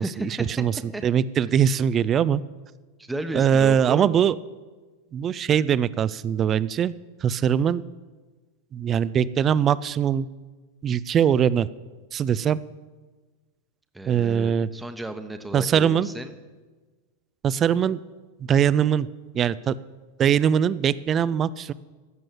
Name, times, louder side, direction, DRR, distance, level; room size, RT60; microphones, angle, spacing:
voice 1, 0.0-0.5 0.9-1.0 3.0-4.1 13.9-16.3, right 1 dB, 5° right, 8 dB, 1.1 m, -34 dB
voice 2, 1.0-2.4 3.3-4.3 5.1-6.9 7.2-7.8 8.7-10.3 10.8-11.7 12.1-12.6 14.1-14.7 15.5-16.1 17.4-18.0 18.5-19.1 19.3-19.8 20.2-21.7, right 8 dB, 25° right, 19 dB, 0.5 m, -21 dB
15.0 x 7.7 x 9.8 m, 1.3 s
figure-of-eight pair, 90°, 0 cm